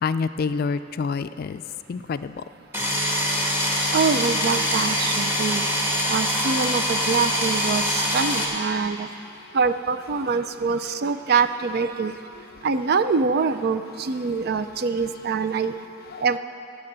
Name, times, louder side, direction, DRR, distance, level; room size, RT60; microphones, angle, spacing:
voice 1, 0.0-1.6 1.9-2.4 12.5-12.7 16.1-16.2, left 5 dB, 50° left, 12 dB, 0.3 m, -27 dB
sound 1, 2.7-8.4, equal, 10° right, 1.6 m, -24 dB
voice 2, 3.9-5.7 6.1-9.1 9.5-12.1 12.6-15.7 16.2-16.4, right 5 dB, 55° right, 11 dB, 0.4 m, -24 dB
14.5 x 5.7 x 8.6 m, 2.6 s
head